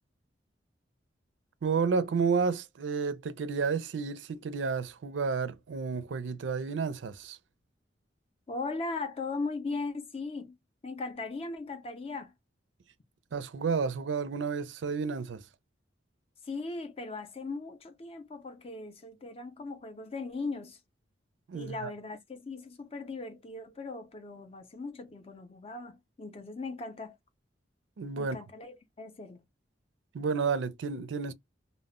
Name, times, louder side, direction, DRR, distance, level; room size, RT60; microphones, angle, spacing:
voice 1, 1.6-7.4 13.3-15.5 21.5-21.9 28.0-28.4 30.1-31.3, right 5 dB, 80° right, 0.4 m, -31 dB
voice 2, 8.5-10.6 10.8-12.3 16.4-20.8 21.5-27.2 28.2-29.4, left 3 dB, 35° left, 0.5 m, -38 dB
2.1 x 2.1 x 3.5 m
head